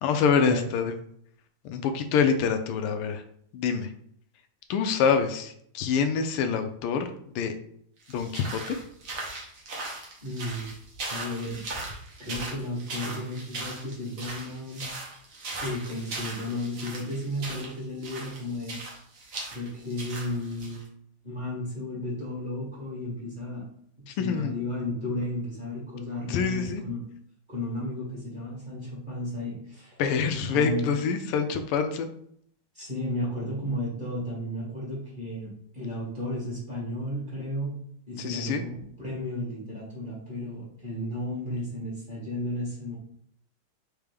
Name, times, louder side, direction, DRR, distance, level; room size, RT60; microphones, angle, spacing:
voice 1, 0.0-0.9 1.6-3.2 3.5-3.9 4.7-7.5 8.1-8.8 24.1-24.6 26.3-26.8 30.0-32.1 38.2-38.6, left 6 dB, 85° left, 8 dB, 1.5 m, -26 dB
sound 1, 8.0-20.8, right 2 dB, 45° right, 1.2 m, -39 dB
voice 2, 10.2-10.7 11.1-11.6 12.2-14.9 15.6-18.8 19.5-20.9 21.2-23.6 24.0-27.0 27.5-30.0 30.5-30.9 32.7-37.8 38.1-43.0, left 1 dB, 25° right, -7 dB, 1.7 m, -33 dB
4.5 x 3.4 x 3.4 m, 0.66 s
omnidirectional pair, 2.4 m